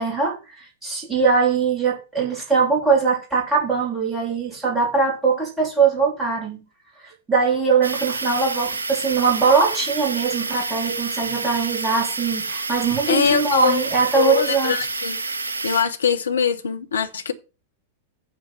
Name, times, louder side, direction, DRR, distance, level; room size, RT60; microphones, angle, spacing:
voice 1, 0.0-6.6 7.0-14.9, right 5 dB, 10° right, 3.6 m, -21 dB
sound 1, 7.8-15.8, right 3 dB, 75° right, 0.7 m, -28 dB
voice 2, 13.1-13.8 14.2-15.2 15.6-17.3, left 7 dB, 70° left, 1.2 m, -22 dB
9.0 x 4.0 x 7.0 m
figure-of-eight pair, 95°, 0 cm